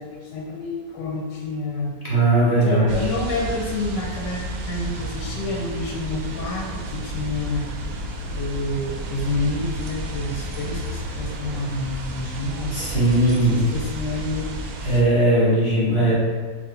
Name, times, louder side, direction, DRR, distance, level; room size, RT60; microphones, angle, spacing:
voice 1, 0.0-1.9 2.6-7.6 8.3-12.7 13.4-14.6, left 2 dB, 85° left, -1 dB, 1.3 m, -28 dB
voice 2, 2.0-3.1 12.7-13.6 14.8-16.1, right 1 dB, 20° left, -10 dB, 1.5 m, -19 dB
sound 1, 2.9-15.0, right 1 dB, 70° right, 0.9 m, -32 dB
4.7 x 2.6 x 4.0 m, 1.4 s
omnidirectional pair, 1.9 m